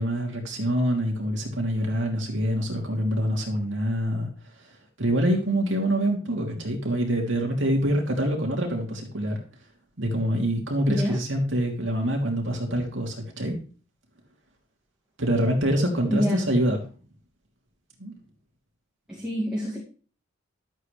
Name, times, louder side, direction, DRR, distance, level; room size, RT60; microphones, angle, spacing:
voice 1, 0.0-4.3 5.0-9.4 10.0-13.5 15.2-16.8 18.0-18.1, equal, 60° right, 1 dB, 2.9 m, -25 dB
voice 2, 16.1-16.4 19.1-19.8, equal, 5° right, -6 dB, 2.2 m, -26 dB
12.5 x 8.2 x 3.3 m, 0.38 s
head